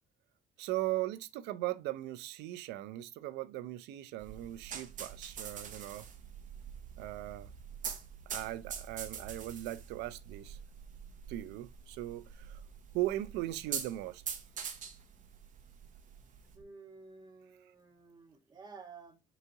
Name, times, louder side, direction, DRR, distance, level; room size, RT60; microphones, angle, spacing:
voice 1, 0.6-6.1 7.0-7.5 8.3-10.6 11.3-12.6 12.9-14.2, right 15 dB, 90° right, 0.5 m, -38 dB
sound 1, 4.2-16.6, right 7 dB, 50° right, 0.9 m, -45 dB
voice 2, 16.5-19.2, right 4 dB, 25° right, 1.4 m, -52 dB
3.9 x 2.8 x 4.6 m
cardioid pair, 110°, 17 cm